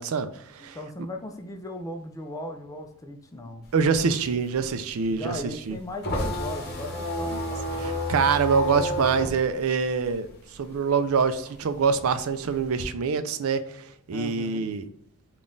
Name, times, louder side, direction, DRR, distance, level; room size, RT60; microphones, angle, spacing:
voice 1, 0.0-0.8 3.7-5.8 7.3-7.4 7.8-14.8, right 5 dB, 70° right, 0.4 m, -25 dB
voice 2, 0.6-3.6 5.1-8.0 14.1-14.7, left 1 dB, 15° left, 0.4 m, -37 dB
sound 1, 3.6-10.7 11.1-12.8, left 1 dB, 45° left, 0.9 m, -31 dB
3.7 x 2.4 x 3.8 m
head